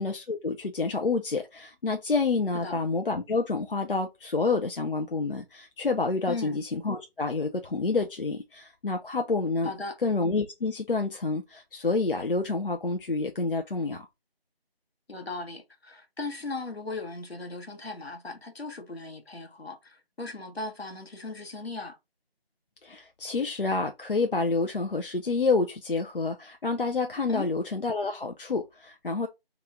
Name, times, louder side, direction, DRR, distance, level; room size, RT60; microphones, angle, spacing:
voice 1, 0.0-9.7 10.0-14.1 22.8-29.3, left 3 dB, 60° left, 0.5 m, -28 dB
voice 2, 6.3-6.6 9.6-10.0 15.1-22.0 27.3-27.5, left 3 dB, 75° left, 1.0 m, -37 dB
3.0 x 2.3 x 3.5 m
figure-of-eight pair, 170°, 31 cm